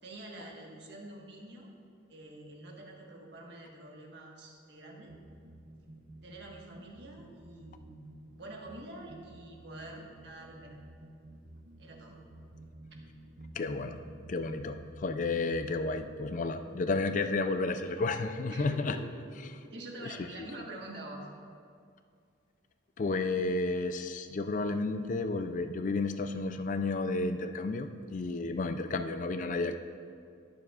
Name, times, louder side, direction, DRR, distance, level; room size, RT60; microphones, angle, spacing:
voice 1, 0.0-1.7 2.1-5.2 6.2-10.8 11.8-12.2 18.5-19.2 19.6-21.3, right 2 dB, 60° right, -1 dB, 1.4 m, -46 dB
sound 1, 5.1-16.0, right 1 dB, 80° right, 0.8 m, -52 dB
voice 2, 13.5-14.0 14.3-19.0 19.4-19.5 20.0-20.5 23.0-29.7, left 3 dB, 40° left, 9 dB, 0.4 m, -32 dB
20.0 x 7.0 x 2.4 m, 2.3 s
head